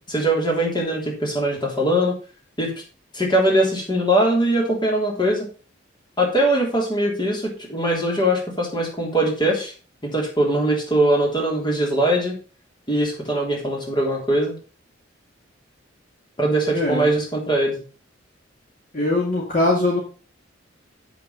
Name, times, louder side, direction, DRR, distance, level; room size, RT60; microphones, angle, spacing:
voice 1, 0.1-2.2 2.6-2.7 3.1-5.5 6.2-9.7 10.0-12.3 12.9-14.5 16.4-17.8, right 1 dB, 25° left, -1 dB, 3.2 m, -21 dB
voice 2, 16.7-17.1 18.9-20.0, left 2 dB, 45° left, -2 dB, 2.0 m, -21 dB
7.6 x 6.1 x 5.5 m, 0.37 s
head